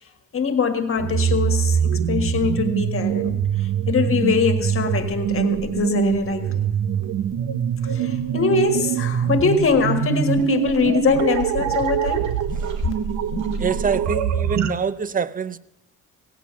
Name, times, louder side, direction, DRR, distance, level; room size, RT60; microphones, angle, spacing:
voice 1, 0.3-6.6 7.8-12.3, left 5 dB, 45° left, 1.7 m, -23 dB
sound 1, 1.0-14.7, right 8 dB, 65° right, 0.8 m, -23 dB
sound 2, 8.5-13.9, equal, 85° right, 2.2 m, -38 dB
voice 2, 13.6-15.6, right 6 dB, 30° right, 0.5 m, -25 dB
17.0 x 8.3 x 7.0 m
cardioid pair, 90°, 30 cm